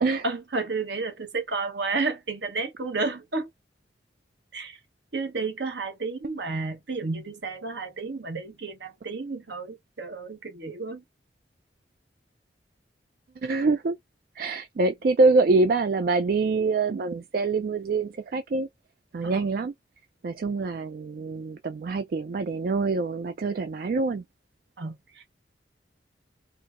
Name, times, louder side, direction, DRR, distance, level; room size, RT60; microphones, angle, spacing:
voice 1, 0.2-3.5 4.5-4.8 5.1-11.0 19.2-19.4 24.8-25.4, right 3 dB, 70° right, 1.0 m, -31 dB
voice 2, 13.4-13.9 14.4-18.7 19.1-19.7 20.2-24.2, right 3 dB, 50° right, 0.3 m, -25 dB
4.5 x 2.0 x 2.4 m
head